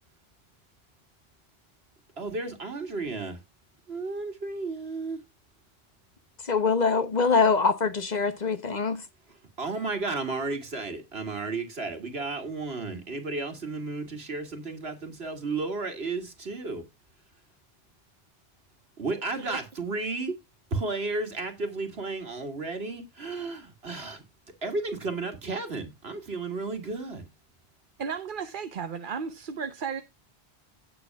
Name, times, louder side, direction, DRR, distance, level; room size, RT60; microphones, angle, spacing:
voice 1, 2.2-3.4 3.9-5.2 9.6-16.8 19.0-20.3 20.7-24.2 24.6-27.3, right 3 dB, 75° right, 2.6 m, -33 dB
voice 2, 6.5-9.0, left 5 dB, 45° left, 0.9 m, -24 dB
voice 3, 28.0-30.0, right 6 dB, 55° right, 1.0 m, -34 dB
17.0 x 6.9 x 2.3 m
omnidirectional pair, 1.0 m